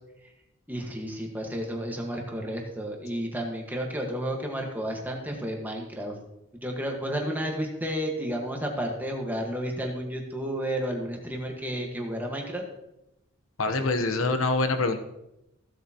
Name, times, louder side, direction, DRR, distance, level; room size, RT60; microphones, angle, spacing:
voice 1, 0.7-6.1 6.6-12.6, equal, 10° right, 1 dB, 1.5 m, -32 dB
voice 2, 13.6-15.0, left 3 dB, 85° left, 7 dB, 1.0 m, -25 dB
15.5 x 7.9 x 2.9 m, 0.89 s
head